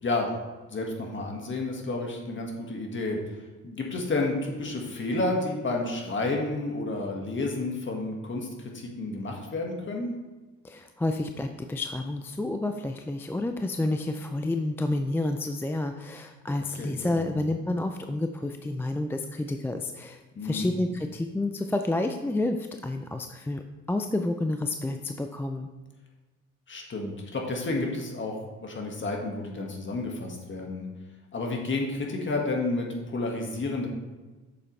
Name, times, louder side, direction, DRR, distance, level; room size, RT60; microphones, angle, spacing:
voice 1, 0.7-3.2 3.6-8.5 8.7-10.1 16.8-17.4 20.4-20.7 26.7-30.8 31.3-33.9, left 2 dB, 40° left, 0 dB, 1.7 m, -31 dB
voice 2, 10.6-23.6 23.9-25.7, left 2 dB, 10° left, 6 dB, 0.4 m, -29 dB
7.8 x 6.9 x 3.3 m, 1.2 s
cardioid pair, 90°, 30 cm